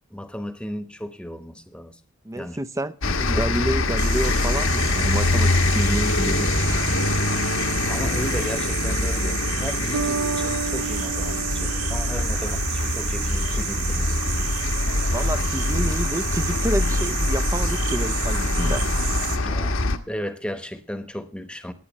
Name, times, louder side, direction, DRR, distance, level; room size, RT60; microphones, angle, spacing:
voice 1, 0.1-2.0 2.3-2.6 7.9-14.4 19.4-19.8 20.1-21.7, equal, 5° left, 1.1 m, -35 dB
voice 2, 2.2-6.8 15.1-18.9, right 1 dB, 15° right, 0.5 m, -29 dB
sound 1, 3.0-20.0, left 2 dB, 60° left, 1.2 m, -24 dB
sound 2, 4.0-19.4, right 9 dB, 80° right, 1.9 m, -31 dB
Bass guitar, 9.9-13.5, right 4 dB, 55° right, 0.7 m, -32 dB
18.5 x 9.5 x 3.1 m
head